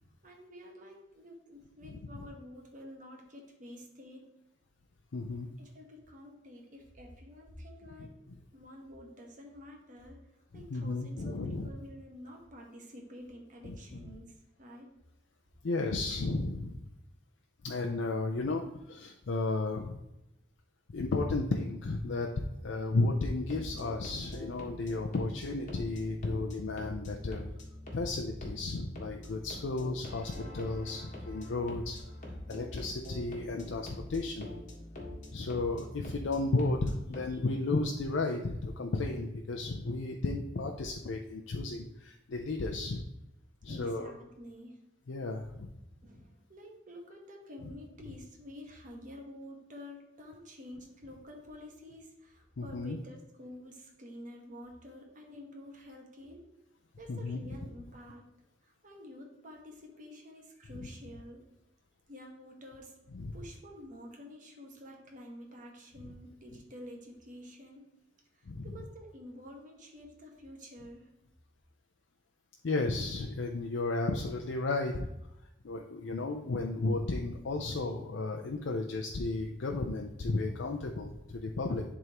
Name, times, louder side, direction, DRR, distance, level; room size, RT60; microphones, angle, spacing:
voice 1, 0.2-4.3 5.6-8.1 8.5-10.2 10.5-14.9 37.3-37.4 43.7-44.8 46.0-56.5 57.0-58.3 58.6-61.4 62.1-62.9 63.3-67.8 68.3-71.1, left 1 dB, 45° right, 1 dB, 1.3 m, -49 dB
voice 2, 1.9-2.3 5.1-5.5 10.5-11.7 13.6-13.8 15.6-16.8 17.6-20.0 20.9-27.5 27.9-32.0 32.5-34.5 35.3-43.0 43.6-44.1 45.1-45.7 52.6-53.0 57.1-57.4 63.1-63.3 68.5-68.7 72.6-75.1 75.6-81.8, left 2 dB, 85° left, 1 dB, 0.5 m, -33 dB
sound 1, 23.3-37.4, left 1 dB, 45° left, 1.4 m, -45 dB
11.0 x 3.6 x 3.0 m, 0.91 s
head